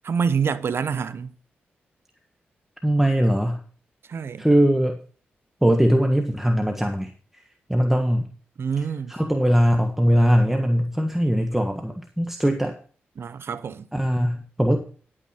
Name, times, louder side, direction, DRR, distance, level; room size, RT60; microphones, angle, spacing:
voice 1, 0.0-1.3 4.1-4.5 8.6-9.1 13.2-13.9, right 6 dB, 65° right, 0.8 m, -26 dB
voice 2, 2.8-3.6 4.4-5.0 5.6-7.4 7.7-8.3 9.1-12.7 13.9-14.8, equal, 5° right, 1.4 m, -21 dB
10.5 x 8.8 x 4.4 m
supercardioid pair, 45°, 4 cm